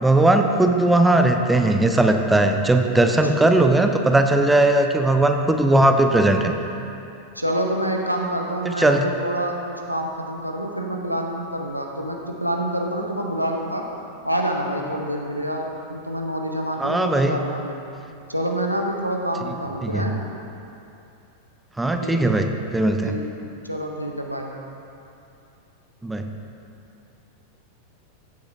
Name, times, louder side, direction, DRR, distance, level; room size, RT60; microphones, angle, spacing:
voice 1, 0.0-6.5 8.7-9.1 16.8-17.4 19.8-20.1 21.8-23.1 26.0-26.3, right 2 dB, 5° right, 5 dB, 0.6 m, -18 dB
voice 2, 7.3-13.8 14.2-17.8 18.3-20.2 22.0-22.5 23.0-23.3 23.6-24.6, right 1 dB, 90° right, 1 dB, 0.8 m, -27 dB
15.0 x 7.7 x 2.7 m, 2.7 s
figure-of-eight pair, 90°, 0 cm